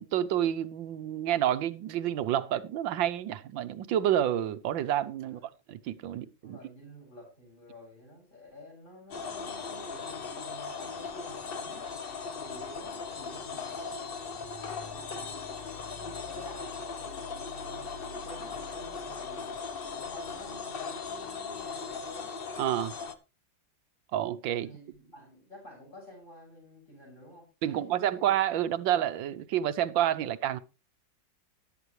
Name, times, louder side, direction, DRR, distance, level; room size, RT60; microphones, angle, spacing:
voice 1, 0.0-5.4 5.7-6.6 22.6-22.9 24.1-24.7 27.6-30.6, right 11 dB, 80° right, 1.5 m, -29 dB
voice 2, 6.4-11.9 12.3-14.0 14.6-19.7 19.9-22.3 24.6-28.5, left 1 dB, 25° left, 7.2 m, -51 dB
sound 1, 9.1-23.1, left 5 dB, 40° left, 0.8 m, -38 dB
13.5 x 11.0 x 3.2 m
omnidirectional pair, 2.1 m